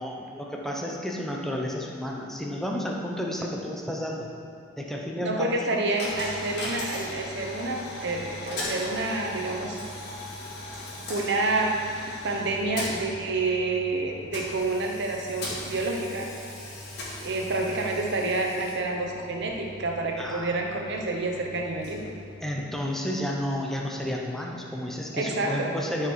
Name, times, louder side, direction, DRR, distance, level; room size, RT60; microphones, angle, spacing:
voice 1, 0.0-4.3 4.8-5.8 20.2-20.5 22.4-26.1, equal, ahead, -1 dB, 0.9 m, -31 dB
voice 2, 5.2-9.8 11.1-16.3 17.2-22.1 25.1-25.8, right 2 dB, 60° right, 1 dB, 1.0 m, -28 dB
Coin (dropping), 6.0-22.9, left 1 dB, 55° left, 2.1 m, -39 dB
12.5 x 5.0 x 4.7 m, 2.5 s
head